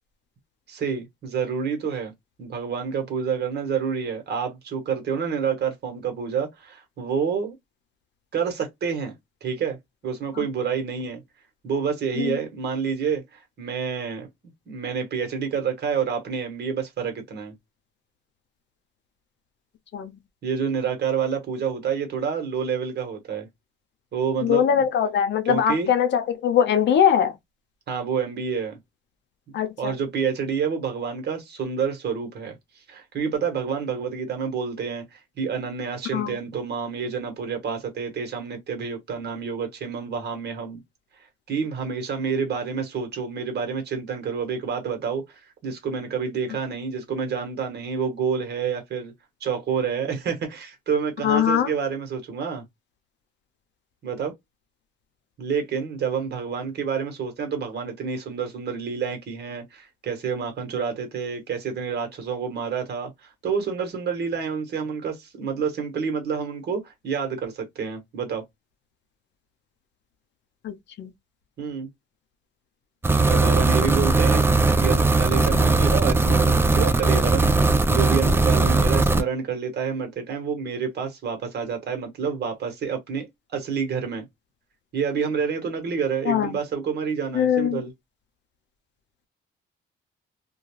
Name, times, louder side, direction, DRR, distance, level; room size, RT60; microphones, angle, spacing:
voice 1, 0.7-2.1 2.4-7.6 8.3-9.1 9.4-9.8 10.0-11.2 11.6-14.3 14.7-17.5 20.4-23.5 24.1-24.8 25.4-25.9 27.9-28.8 29.5-32.5 32.9-40.8 41.5-49.1 49.4-52.6 54.0-54.3 55.4-68.4 71.6-71.9 73.2-77.6 77.9-84.2 84.9-87.9, right 6 dB, 55° right, 1.2 m, -28 dB
voice 2, 24.4-27.3 29.5-29.9 36.1-36.4 51.2-51.7 70.6-71.1 86.3-86.5 87.3-87.8, left 8 dB, 65° left, 0.6 m, -21 dB
sound 1, 73.0-79.2, right 3 dB, 10° right, 0.3 m, -19 dB
2.3 x 2.3 x 3.0 m
cardioid pair, 90°, 20 cm